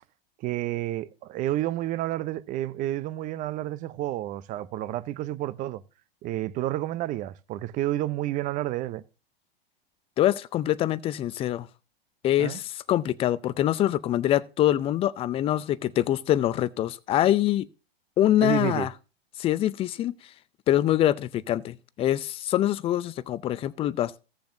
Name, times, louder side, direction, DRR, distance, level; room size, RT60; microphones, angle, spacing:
voice 1, 0.4-5.8 6.2-9.0 12.4-12.6 18.4-18.9, right 14 dB, 25° right, 0.6 m, -30 dB
voice 2, 10.2-11.7 12.2-17.7 18.2-18.9 19.4-20.1 20.7-24.2, left 12 dB, 20° left, 0.4 m, -24 dB
16.5 x 6.8 x 2.6 m
hypercardioid pair, 105°, 31 cm